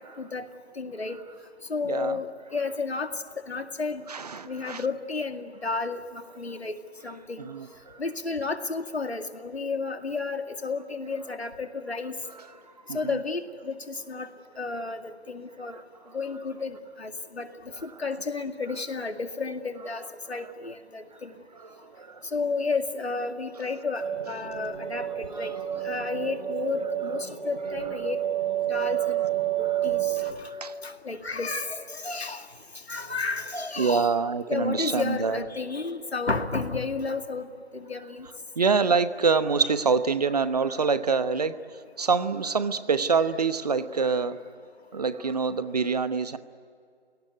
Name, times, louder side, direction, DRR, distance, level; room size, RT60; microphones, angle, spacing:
voice 1, 0.8-1.2 1.7-3.1 3.5-4.1 4.4-6.7 7.0-7.5 8.0-12.1 12.9-14.3 14.6-15.8 16.1-17.5 17.8-21.3 22.3-25.5 25.8-28.2 28.7-29.2 29.6-30.5 30.8-32.5 32.9-34.1 34.5-38.3, left 4 dB, 75° left, 7 dB, 2.2 m, -32 dB
voice 2, 1.8-2.2 4.1-4.8 7.4-8.0 12.5-12.6 12.9-13.2 15.6-15.8 21.5-22.2 25.3-25.8 29.7-29.9 30.6-31.0 33.8-35.4 38.6-41.6 42.0-44.4 44.9-46.4, right 5 dB, 40° right, 13 dB, 1.0 m, -26 dB
sound 1, 24.0-30.3, right 12 dB, 55° right, 4.3 m, -29 dB
29.5 x 18.0 x 9.4 m, 2.3 s
figure-of-eight pair, 150°, 32 cm